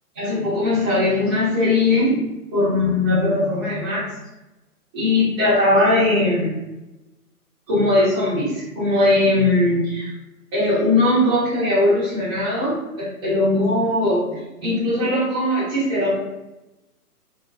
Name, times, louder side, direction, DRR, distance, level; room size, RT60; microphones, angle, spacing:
voice 1, 0.1-2.2 2.5-4.0 4.9-6.5 7.7-10.1 10.5-16.2, left 2 dB, 15° right, -11 dB, 0.9 m, -20 dB
2.5 x 2.1 x 2.5 m, 1.0 s
hypercardioid pair, 160°, 46 cm